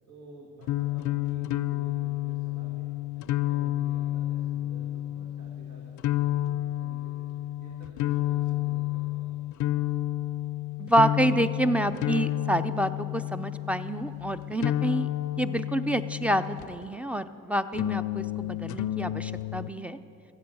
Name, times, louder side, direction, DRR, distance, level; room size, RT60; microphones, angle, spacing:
voice 1, 0.1-2.9 3.1-7.3 7.6-9.3, right 1 dB, 65° right, -1 dB, 2.0 m, -51 dB
sound 1, 0.6-16.9 17.7-19.7, left 15 dB, 75° left, 0.5 m, -30 dB
voice 2, 10.8-15.1 15.4-20.0, right 1 dB, 5° right, 12 dB, 0.5 m, -28 dB
14.0 x 8.8 x 7.7 m, 2.6 s
cardioid pair, 90°, 30 cm